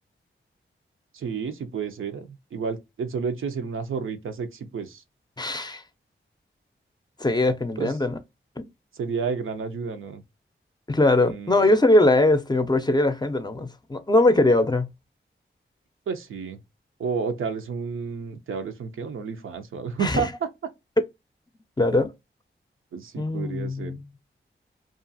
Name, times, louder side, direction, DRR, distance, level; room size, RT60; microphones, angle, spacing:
voice 1, 1.1-5.0 7.8-7.9 9.0-10.2 11.3-11.7 16.1-16.6 17.0-20.5 22.9-24.0, right 5 dB, 80° right, 0.5 m, -31 dB
voice 2, 5.4-5.8 7.2-8.2 8.6-8.7 10.9-14.9 20.0-20.2 21.8-22.1 23.2-24.1, left 2 dB, 20° left, 0.5 m, -21 dB
2.4 x 2.3 x 2.5 m
cardioid pair, 45°, 21 cm